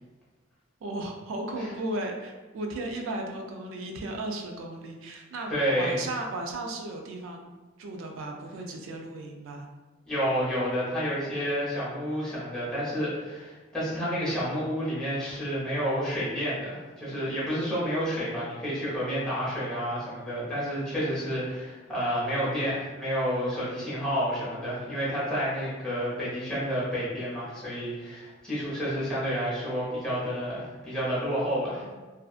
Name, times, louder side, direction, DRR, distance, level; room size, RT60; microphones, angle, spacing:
voice 1, 0.8-7.5 7.8-9.7 31.8-31.9, right 2 dB, 85° right, 2 dB, 0.3 m, -35 dB
voice 2, 5.5-6.0 10.1-31.8, equal, 5° left, -10 dB, 0.9 m, -30 dB
2.5 x 2.4 x 2.3 m, 1.3 s
head